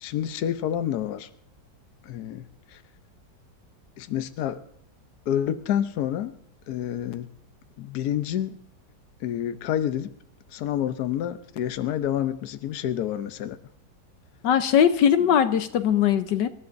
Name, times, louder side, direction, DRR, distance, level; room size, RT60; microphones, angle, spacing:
voice 1, 0.0-1.3 2.0-2.8 4.0-4.6 5.3-6.3 6.7-7.3 7.8-8.5 9.2-10.1 10.5-13.6 15.2-15.3, left 10 dB, 65° left, 1.2 m, -28 dB
voice 2, 14.4-16.5, left 9 dB, 85° left, 1.5 m, -20 dB
27.0 x 14.0 x 2.6 m
omnidirectional pair, 1.8 m